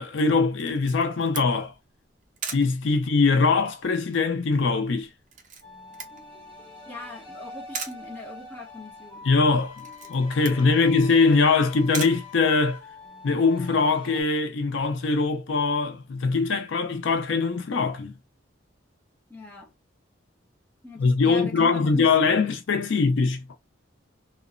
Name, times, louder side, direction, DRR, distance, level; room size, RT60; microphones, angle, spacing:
voice 1, 0.0-1.7 2.5-5.1 9.2-9.8 10.1-12.8 13.2-18.1 21.0-23.6, left 4 dB, 70° left, 0.5 m, -22 dB
Camera, 0.6-13.1, right 5 dB, 40° right, 0.6 m, -41 dB
sound 1, 5.6-14.2, left 4 dB, 25° right, 1.4 m, -44 dB
voice 2, 6.9-9.4 10.6-11.0 19.3-19.7 20.8-22.5, left 3 dB, 10° left, 0.9 m, -41 dB
2.9 x 2.0 x 2.4 m
head